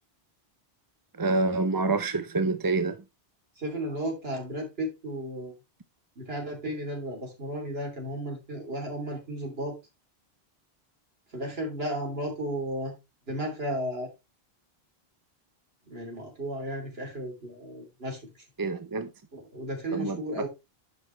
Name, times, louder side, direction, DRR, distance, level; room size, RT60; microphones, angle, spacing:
voice 1, 1.2-3.0 18.6-19.1 19.9-20.2, right 3 dB, 25° right, 0.5 m, -27 dB
voice 2, 3.6-5.5 6.2-9.8 11.3-13.0 13.3-14.1 15.9-18.2 19.3-20.5, right 1 dB, 75° right, 3.4 m, -34 dB
11.0 x 5.7 x 3.2 m
omnidirectional pair, 1.0 m